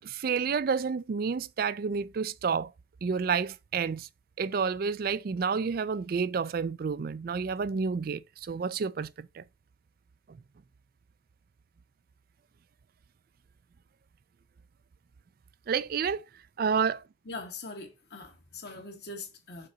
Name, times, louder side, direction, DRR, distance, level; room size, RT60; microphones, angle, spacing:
voice 1, 0.0-2.7 3.0-4.1 4.4-9.4 15.7-16.2 16.6-17.0, right 6 dB, 50° right, 0.4 m, -30 dB
voice 2, 17.3-19.7, left 3 dB, 60° left, 2.0 m, -42 dB
6.7 x 3.8 x 4.9 m
head